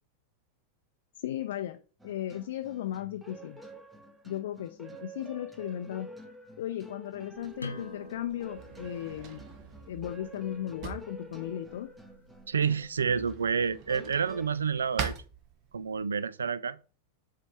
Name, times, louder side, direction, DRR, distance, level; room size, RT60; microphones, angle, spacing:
voice 1, 1.2-3.6 4.2-6.1 6.6-9.5 9.9-11.9, left 11 dB, 55° left, 0.5 m, -36 dB
sound 1, 2.0-14.5, right 1 dB, 5° right, 0.9 m, -49 dB
Drawer open or close, 7.3-16.1, right 6 dB, 40° right, 1.0 m, -44 dB
sound 2, 7.6-13.0, left 2 dB, 80° left, 0.9 m, -48 dB
voice 2, 12.5-15.1 15.7-16.8, right 6 dB, 70° right, 0.3 m, -29 dB
7.4 x 3.2 x 4.1 m
figure-of-eight pair, 90°, 0 cm